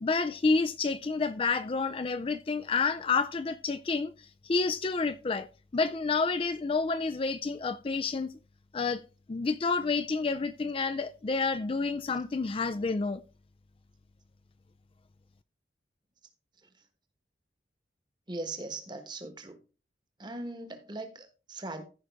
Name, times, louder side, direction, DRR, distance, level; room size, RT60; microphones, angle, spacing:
voice 1, 0.0-5.5 5.7-8.3 8.7-9.0 9.3-13.2, left 4 dB, 30° left, 0.4 m, -29 dB
voice 2, 18.3-19.6 20.2-21.8, right 2 dB, 25° right, 1.2 m, -39 dB
14.5 x 5.3 x 3.4 m
head